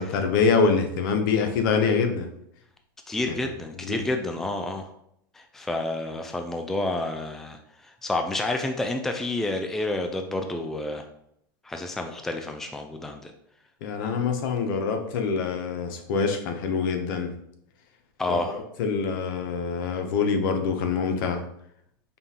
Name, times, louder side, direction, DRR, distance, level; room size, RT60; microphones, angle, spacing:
voice 1, 0.0-2.3 3.8-4.0 13.8-17.3 18.3-21.4, left 5 dB, 65° left, 6 dB, 0.7 m, -25 dB
voice 2, 3.1-4.9 5.3-7.6 8.0-11.0 11.6-13.3 18.2-18.6, left 2 dB, 5° left, 4 dB, 0.3 m, -29 dB
5.3 x 2.4 x 2.8 m, 0.73 s
supercardioid pair, 125°, 12 cm